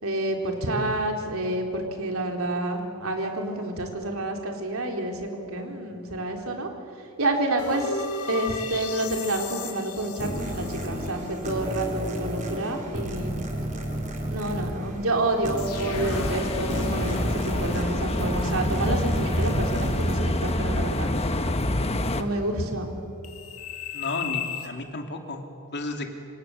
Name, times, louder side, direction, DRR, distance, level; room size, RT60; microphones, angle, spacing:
voice 1, 0.0-6.7 7.2-13.3 14.3-21.1 22.1-22.9, right 1 dB, 70° right, 2 dB, 4.0 m, -28 dB
sound 1, 7.6-11.5 11.9-12.0 15.6-19.3 23.2-24.7, left 5 dB, 90° left, 2.7 m, -36 dB
sound 2, 10.2-21.4, equal, 35° right, 4.1 m, -33 dB
sound 3, 15.9-22.2, left 1 dB, 30° left, 1.3 m, -27 dB
voice 2, 23.9-25.4 25.7-26.1, left 2 dB, 50° left, 4 dB, 2.9 m, -32 dB
28.0 x 26.5 x 8.0 m, 2.6 s
head